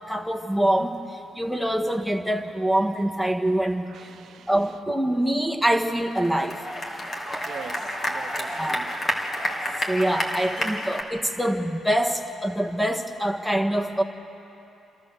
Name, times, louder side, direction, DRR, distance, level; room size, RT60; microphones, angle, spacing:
voice 1, 0.1-1.0 1.3-3.9 4.5-6.6 8.5-8.8 9.9-14.0, right 1 dB, 5° left, 1.5 m, -24 dB
voice 2, 3.9-4.5 7.4-8.9, right 9 dB, 70° right, 0.7 m, -43 dB
sound 1, 6.1-11.0, equal, 35° left, 2.2 m, -30 dB
29.0 x 13.5 x 6.7 m
cardioid pair, 90°, 0 cm